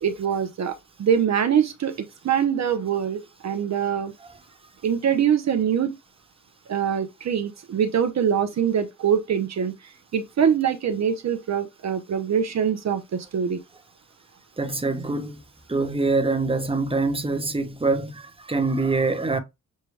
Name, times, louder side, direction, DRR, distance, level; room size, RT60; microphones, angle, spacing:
voice 1, 0.0-4.1 4.8-5.9 6.7-9.7 10.1-13.6, right 8 dB, 60° right, 0.7 m, -24 dB
voice 2, 14.6-15.4 15.7-19.4, right 3 dB, 20° right, 1.0 m, -24 dB
6.5 x 2.2 x 3.3 m
cardioid pair, 80°, 31 cm